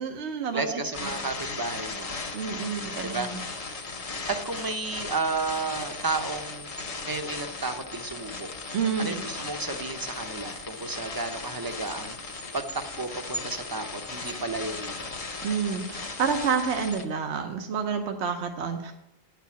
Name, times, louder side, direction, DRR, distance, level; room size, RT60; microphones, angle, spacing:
voice 1, 0.0-0.8 2.3-3.4 8.7-9.2 15.4-18.9, right 6 dB, 75° right, 5 dB, 1.1 m, -29 dB
voice 2, 0.5-2.1 2.8-3.5 4.3-6.7 7.0-8.5 9.0-12.2 12.5-15.1, right 3 dB, 20° right, 6 dB, 0.7 m, -32 dB
sound 1, 0.9-17.1, left 3 dB, 35° left, 0.8 m, -37 dB
10.0 x 4.7 x 7.1 m, 0.82 s
omnidirectional pair, 1.2 m